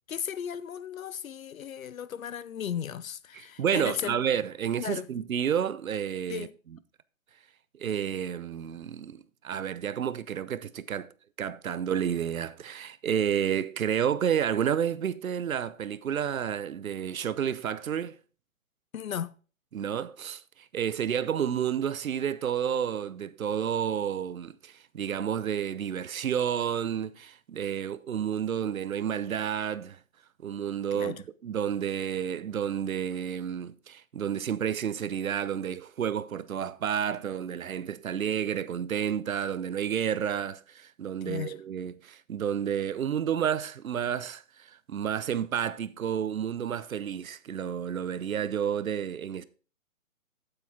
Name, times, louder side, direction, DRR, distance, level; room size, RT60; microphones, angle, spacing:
voice 1, 0.1-4.2 4.8-5.1 6.3-6.5 18.9-19.3 30.9-31.2 41.2-41.6, left 8 dB, 75° left, 0.8 m, -35 dB
voice 2, 3.3-6.8 7.8-11.1 11.4-18.1 19.7-20.4 20.7-30.0 30.4-49.4, right 8 dB, 80° right, 0.8 m, -30 dB
8.9 x 8.1 x 3.6 m
hypercardioid pair, 155°, 41 cm